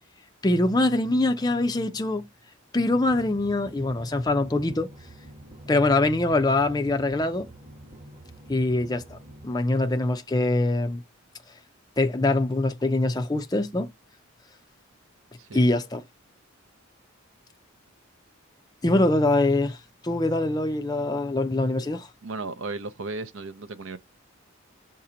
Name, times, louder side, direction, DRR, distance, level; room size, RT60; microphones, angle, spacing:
voice 1, 0.4-2.3 2.7-4.9 5.7-7.5 8.5-9.2 9.4-11.0 12.0-13.9 15.5-16.0 18.8-19.8 20.0-22.1, left 2 dB, 20° left, 0.5 m, -23 dB
sound 1, 3.1-9.5, right 1 dB, 25° right, 1.1 m, -47 dB
voice 2, 22.2-24.0, right 3 dB, 60° right, 0.6 m, -35 dB
6.6 x 2.9 x 4.9 m
head